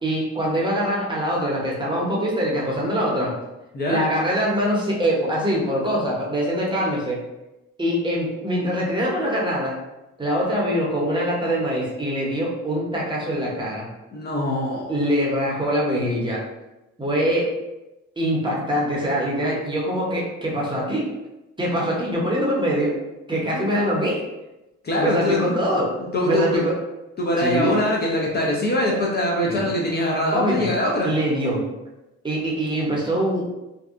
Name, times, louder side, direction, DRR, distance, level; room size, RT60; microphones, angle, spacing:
voice 1, 0.0-3.3 3.9-7.2 7.8-9.8 10.2-13.9 14.9-16.4 17.0-17.5 18.2-21.1 21.6-22.9 23.3-24.2 25.0-25.9 26.2-26.7 27.4-27.8 29.4-29.7 30.3-30.7 31.0-31.6 32.2-33.4, equal, 15° right, -4 dB, 0.8 m, -23 dB
voice 2, 3.7-4.1 14.1-14.9 24.8-25.6 26.0-26.6 27.2-31.1, left 1 dB, 35° left, -3 dB, 0.5 m, -23 dB
2.6 x 2.2 x 2.4 m, 0.98 s
cardioid pair, 90°, 30 cm